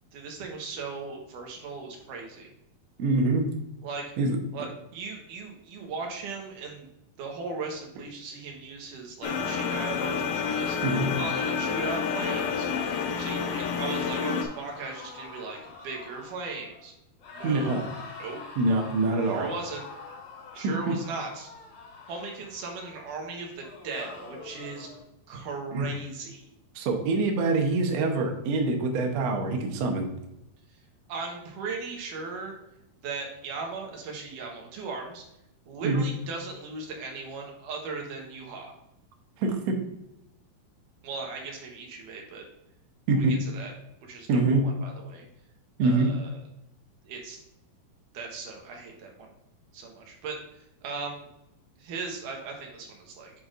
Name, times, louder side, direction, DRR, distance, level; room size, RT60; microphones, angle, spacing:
voice 1, 0.1-2.5 3.8-4.0 4.5-6.9 7.2-10.8 11.2-12.7 13.2-15.6 15.8-16.9 17.3-17.9 18.2-18.4 19.2-19.8 20.5-21.5 22.1-24.9 25.3-26.4 31.1-32.6 33.0-35.2 35.7-38.8 41.0-42.4 43.1-43.7 44.0-45.3 45.8-46.4 47.1-47.4 48.1-49.3 49.7-50.4 50.8-51.3 51.8-53.3, right 4 dB, 65° right, 1 dB, 2.5 m, -37 dB
voice 2, 3.0-3.5 4.2-4.4 10.8-11.1 17.4-17.8 18.6-19.5 20.6-21.0 25.7-25.9 26.7-30.1 35.8-36.0 39.4-39.8 43.1-43.4 44.3-44.7 45.8-46.1, right 3 dB, 80° right, 3 dB, 1.5 m, -25 dB
sound 1, 9.2-14.5, left 6 dB, 80° left, 2.6 m, -29 dB
sound 2, 12.2-16.9 17.2-23.0 23.6-25.0, left 4 dB, 65° left, 3.5 m, -45 dB
8.4 x 5.7 x 2.6 m, 0.84 s
omnidirectional pair, 4.4 m